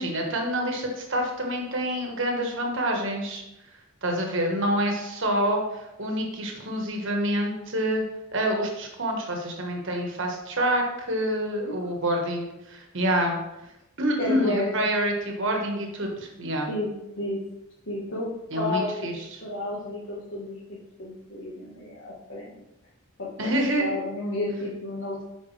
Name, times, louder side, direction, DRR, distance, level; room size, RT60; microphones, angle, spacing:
voice 1, 0.0-3.4 4.0-5.6 6.0-8.0 8.3-13.4 14.0-16.7 18.5-19.4 23.4-24.0, right 1 dB, 55° right, 2 dB, 1.3 m, -27 dB
voice 2, 14.2-14.7 16.7-16.9 17.2-17.4 17.9-18.3 18.5-22.5 23.2-23.5 23.8-25.2, left 2 dB, 55° left, -7 dB, 1.4 m, -31 dB
7.9 x 5.3 x 3.3 m, 0.89 s
head